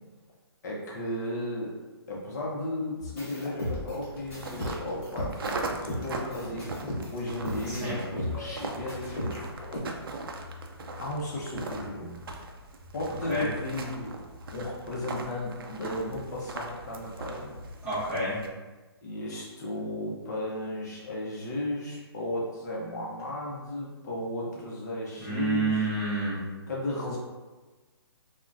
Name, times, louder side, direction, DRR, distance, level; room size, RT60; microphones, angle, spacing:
voice 1, 0.6-1.7 2.1-9.4 11.0-12.1 12.9-14.2 14.5-17.6 19.0-25.9 26.7-27.2, left 1 dB, 40° left, -4 dB, 0.6 m, -34 dB
sound 1, 3.0-9.8, left 1 dB, 25° left, 1.1 m, -36 dB
sound 2, 4.1-18.5, right 2 dB, 60° right, 0.4 m, -40 dB
voice 2, 7.7-8.0 13.3-13.5 17.8-18.4 25.2-26.4, right 2 dB, 10° right, -11 dB, 0.7 m, -29 dB
3.7 x 2.1 x 2.4 m, 1.2 s
hypercardioid pair, 160°, 14 cm